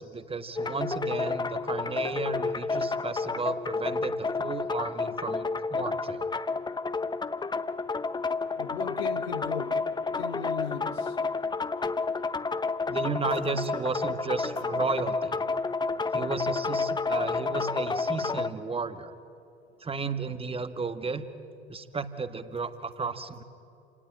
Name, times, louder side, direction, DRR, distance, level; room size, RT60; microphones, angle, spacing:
voice 1, 0.0-6.2 12.9-15.4 16.1-19.1 19.8-21.2 21.7-23.4, right 4 dB, 20° right, 1.6 m, -34 dB
sound 1, 0.6-18.5, left 4 dB, 15° left, 0.9 m, -30 dB
voice 2, 8.6-9.8 10.1-11.2, left 7 dB, 75° left, 1.6 m, -36 dB
29.0 x 18.5 x 9.0 m
figure-of-eight pair, 65°, 31 cm